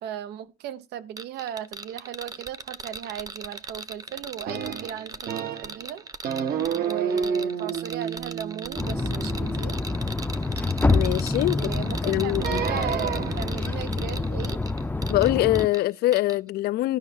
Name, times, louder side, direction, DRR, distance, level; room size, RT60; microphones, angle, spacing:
voice 1, 0.0-6.0 6.8-9.8 11.5-14.6, right 10 dB, 80° right, 1.0 m, -37 dB
sound 1, 1.2-15.8 16.1-16.4, right 3 dB, 20° right, 0.9 m, -39 dB
sound 2, 4.5-5.8 6.2-10.5 12.4-13.7, right 7 dB, 60° right, 1.5 m, -30 dB
sound 3, 8.7-15.7, left 3 dB, 10° left, 0.6 m, -27 dB
voice 2, 10.9-12.6 15.1-17.0, left 16 dB, 70° left, 0.4 m, -24 dB
12.5 x 5.7 x 5.4 m
cardioid pair, 110°, 17 cm